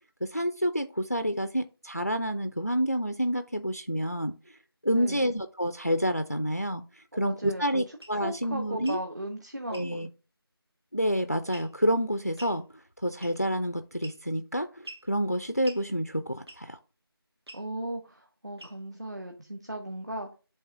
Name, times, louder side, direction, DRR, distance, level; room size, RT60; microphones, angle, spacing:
voice 1, 0.2-4.6 4.8-9.0 9.7-10.1 10.9-12.6 13.0-16.8, equal, 40° left, 10 dB, 0.4 m, -29 dB
voice 2, 4.9-5.3 7.1-10.0 17.5-20.3, right 1 dB, 45° right, 3 dB, 1.0 m, -37 dB
sound 1, 8.0-8.2 8.8-9.0 9.7-9.9 11.5-11.9 12.4-12.6 13.2-13.5 14.0-14.4 14.8-15.1 15.6-15.8 16.5-16.8 17.5-17.7 18.6-18.9, right 1 dB, 85° right, 1.7 m, -46 dB
7.9 x 3.0 x 5.7 m, 0.33 s
figure-of-eight pair, 180°, 13 cm